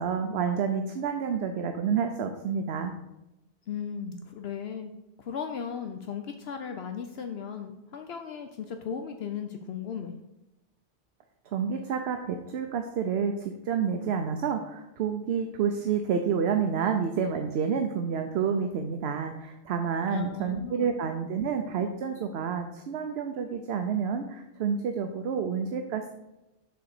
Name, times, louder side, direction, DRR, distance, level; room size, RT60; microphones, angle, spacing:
voice 1, 0.0-2.9 11.5-26.2, right 6 dB, 70° right, 5 dB, 0.9 m, -29 dB
voice 2, 3.7-4.9 5.2-10.2 20.1-20.9, left 7 dB, 70° left, 5 dB, 0.8 m, -36 dB
6.7 x 3.9 x 6.5 m, 0.94 s
omnidirectional pair, 1.1 m